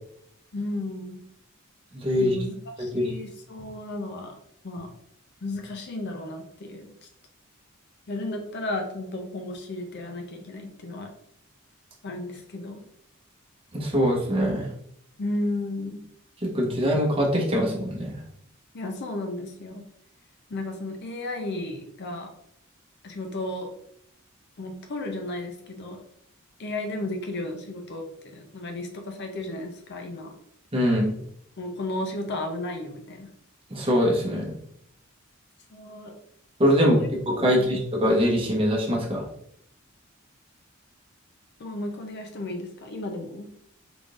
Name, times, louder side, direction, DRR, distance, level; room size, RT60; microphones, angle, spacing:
voice 1, 0.5-1.2 2.1-4.4 4.6-4.9 5.4-7.1 8.1-11.1 12.0-12.8 15.2-16.1 18.7-19.8 20.5-22.3 23.0-23.7 24.6-26.0 26.6-30.3 31.6-33.3 35.7-36.1 36.8-37.1 37.5-37.7 41.6-43.5, left 2 dB, 55° left, 3 dB, 0.5 m, -34 dB
voice 2, 1.9-2.4 2.9-3.1 13.7-14.7 16.4-18.2 30.7-31.1 33.7-34.5 36.6-37.0 37.3-39.2, equal, 25° right, -2 dB, 1.0 m, -23 dB
3.8 x 3.7 x 2.4 m, 0.70 s
head